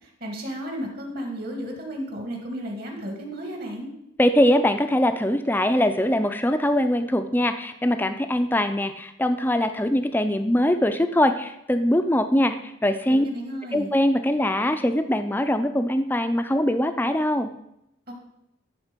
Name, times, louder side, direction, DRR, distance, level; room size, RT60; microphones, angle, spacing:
voice 1, 0.0-3.9 13.1-13.9 18.1-18.2, equal, 50° right, 2 dB, 1.9 m, -33 dB
voice 2, 4.2-13.3 13.7-17.5, left 1 dB, 10° left, 9 dB, 0.4 m, -22 dB
11.5 x 3.9 x 5.2 m, 0.81 s
head